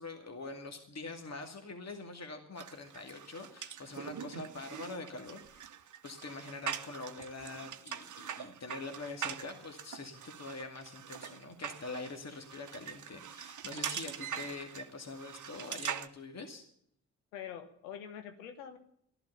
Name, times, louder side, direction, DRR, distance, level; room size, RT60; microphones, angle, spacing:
voice 1, 0.0-5.6 6.0-16.6, left 3 dB, 40° left, 4 dB, 2.3 m, -44 dB
sound 1, 2.6-16.1, right 8 dB, 50° right, 1.0 m, -43 dB
voice 2, 17.3-18.8, left 9 dB, 90° left, 9 dB, 1.3 m, -45 dB
14.0 x 11.5 x 6.8 m, 0.69 s
hypercardioid pair, 40°, 40 cm